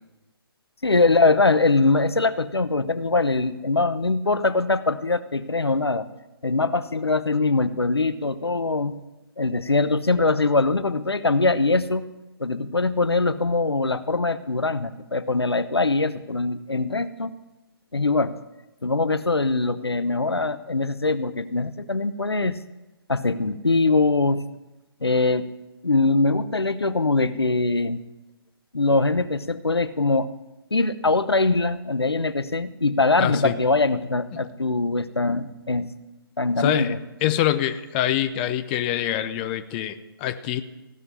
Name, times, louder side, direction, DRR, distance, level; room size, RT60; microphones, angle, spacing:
voice 1, 0.8-6.1 6.4-9.0 9.4-12.1 12.4-17.3 17.9-18.4 18.8-22.6 23.1-24.4 25.0-25.5 25.8-28.0 28.7-30.3 30.7-35.9 36.4-37.0, left 3 dB, 85° left, 13 dB, 0.9 m, -22 dB
voice 2, 33.2-33.6 34.3-34.4 36.6-36.9 37.2-40.6, left 12 dB, 25° left, 10 dB, 0.7 m, -25 dB
16.0 x 6.7 x 10.0 m, 1.0 s
figure-of-eight pair, 135°, 13 cm